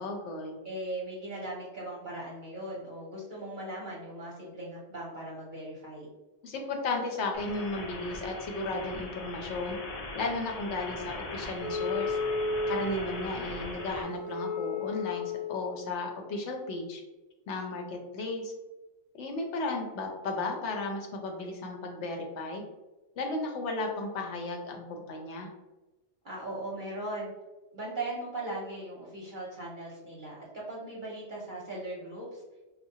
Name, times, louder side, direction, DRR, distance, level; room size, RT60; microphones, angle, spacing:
voice 1, 0.0-0.6 6.4-9.8 10.1-12.2 12.7-17.0 17.5-18.5 19.1-22.6 23.2-25.5, left 2 dB, 70° left, 3 dB, 0.9 m, -34 dB
voice 2, 0.6-6.1 26.2-27.3 27.7-32.4, right 1 dB, 50° right, -5 dB, 0.7 m, -39 dB
sound 1, 7.3-14.0, left 2 dB, 50° left, 0.4 m, -40 dB
Wind instrument woodwind instrument, 11.6-15.7, left 3 dB, ahead, 0.8 m, -34 dB
4.3 x 2.1 x 2.7 m, 1.1 s
omnidirectional pair, 1.3 m